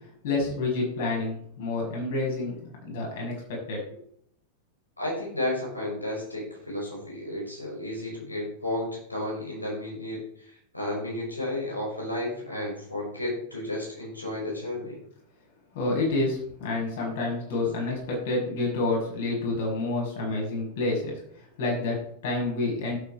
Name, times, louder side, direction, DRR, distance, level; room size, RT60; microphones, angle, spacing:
voice 1, 0.2-3.8 15.7-21.2 21.6-23.0, left 2 dB, 55° left, -1 dB, 6.1 m, -28 dB
voice 2, 5.0-15.0, left 1 dB, 85° left, -2 dB, 5.5 m, -32 dB
13.0 x 8.5 x 4.7 m, 0.67 s
figure-of-eight pair, 90°, 0 cm